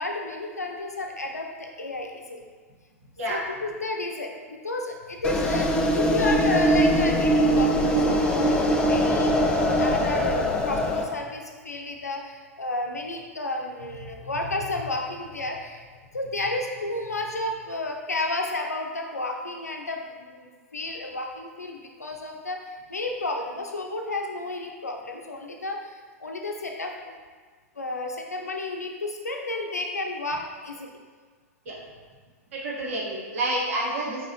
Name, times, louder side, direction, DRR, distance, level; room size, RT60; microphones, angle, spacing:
voice 1, 0.0-2.4 3.3-15.8 16.1-22.6 22.9-27.1 27.8-30.9, left 2 dB, 90° left, 2 dB, 0.6 m, -32 dB
sound 1, 5.2-11.0, equal, 10° left, 0.5 m, -22 dB
voice 2, 32.5-34.3, right 1 dB, 60° right, -3 dB, 1.2 m, -29 dB
4.8 x 4.0 x 2.7 m, 1.5 s
figure-of-eight pair, 100°, 8 cm